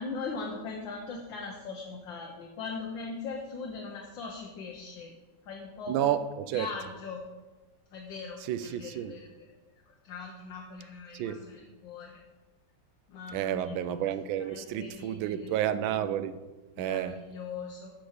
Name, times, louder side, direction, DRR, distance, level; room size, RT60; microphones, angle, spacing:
voice 1, 0.0-5.1 5.5-6.2 6.5-7.2 7.9-9.5 9.9-12.2 13.1-13.8 14.4-15.6 16.8-17.9, left 4 dB, 80° left, 1.6 m, -40 dB
voice 2, 5.9-6.7 8.4-9.1 11.1-11.4 13.3-16.4 16.8-17.2, right 10 dB, 90° right, 1.3 m, -31 dB
8.3 x 6.1 x 4.9 m
omnidirectional pair, 2.1 m